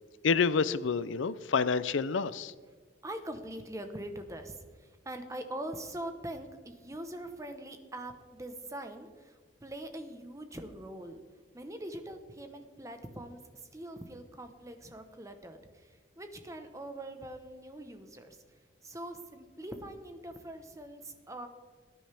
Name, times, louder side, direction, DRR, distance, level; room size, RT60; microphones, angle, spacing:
voice 1, 0.2-2.5, left 5 dB, 85° left, 16 dB, 0.5 m, -28 dB
voice 2, 3.0-11.2 11.5-18.4 18.8-21.5, right 1 dB, 15° right, 7 dB, 1.0 m, -43 dB
18.5 x 10.0 x 3.5 m, 1.5 s
head